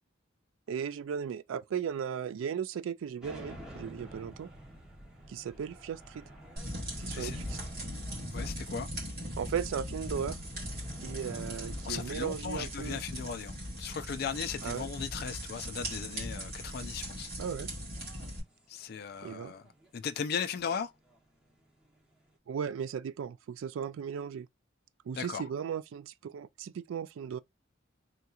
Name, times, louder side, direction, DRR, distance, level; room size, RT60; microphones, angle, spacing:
voice 1, 0.7-4.5 5.3-6.3 7.0-7.6 9.4-10.4 11.0-13.0 14.6-14.9 17.4-17.7 19.2-19.5 22.5-24.5 25.1-27.4, right 7 dB, 80° right, 0.3 m, -36 dB
sound 1, 3.2-22.4, right 1 dB, 5° right, 0.8 m, -53 dB
sound 2, 6.6-18.4, equal, 50° right, 2.0 m, -39 dB
voice 2, 8.3-8.9 11.8-17.3 18.7-19.6 19.9-20.9 25.1-25.4, left 6 dB, 50° left, 0.3 m, -37 dB
3.6 x 2.8 x 2.3 m
head